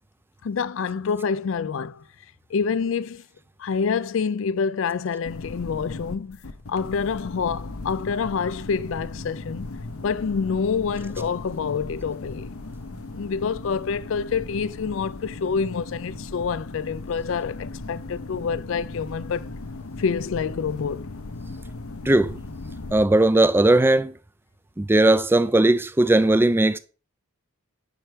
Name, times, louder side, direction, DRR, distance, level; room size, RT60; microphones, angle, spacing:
voice 1, 0.4-2.0 2.5-3.2 3.6-6.4 6.7-9.7 10.0-12.5 13.1-19.4 20.0-21.1, left 5 dB, 65° left, 0.4 m, -27 dB
sound 1, 5.2-23.1, left 2 dB, 80° left, 0.8 m, -37 dB
voice 2, 22.1-22.4 22.9-24.1 24.8-26.8, right 2 dB, 10° right, 0.3 m, -18 dB
10.5 x 4.5 x 5.0 m
head